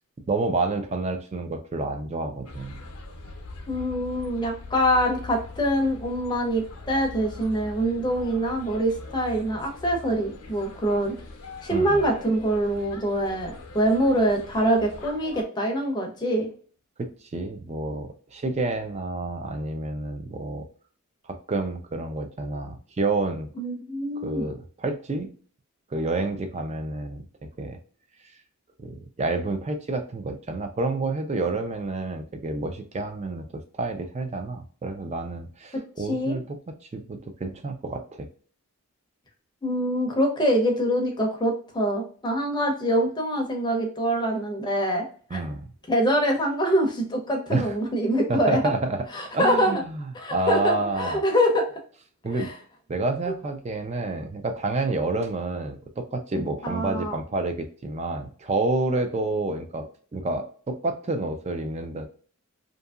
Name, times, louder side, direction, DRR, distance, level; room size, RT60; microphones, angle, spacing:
voice 1, 0.3-2.8 11.7-12.1 17.0-20.7 21.3-23.5 24.2-25.3 25.9-27.3 27.6-27.8 28.8-36.6 36.9-38.3 45.3-45.7 47.5-47.7 48.3-49.0 49.3-51.2 52.2-52.5 52.9-59.9 60.1-62.1, right 2 dB, 30° right, 6 dB, 0.4 m, -29 dB
sound 1, 2.5-15.4, left 3 dB, 85° left, 0.6 m, -42 dB
voice 2, 3.7-11.1 11.6-16.5 23.6-24.5 35.7-36.4 39.6-45.0 45.3-45.4 45.9-48.6 49.1-49.8 50.1-51.7 52.3-52.5 56.6-57.2, equal, 20° left, 2 dB, 0.6 m, -24 dB
2.7 x 2.6 x 2.3 m, 0.44 s
head